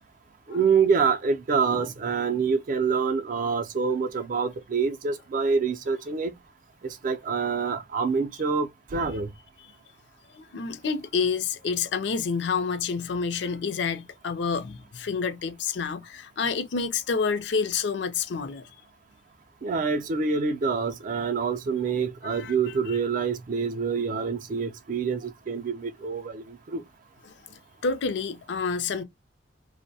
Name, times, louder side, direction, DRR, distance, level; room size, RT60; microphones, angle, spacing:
voice 1, 0.5-6.3 7.0-9.3 19.6-26.8, right 5 dB, 50° right, 0.4 m, -26 dB
voice 2, 10.3-18.7 22.2-22.5 27.3-29.0, left 5 dB, 70° left, 0.4 m, -29 dB
2.6 x 2.0 x 2.6 m
head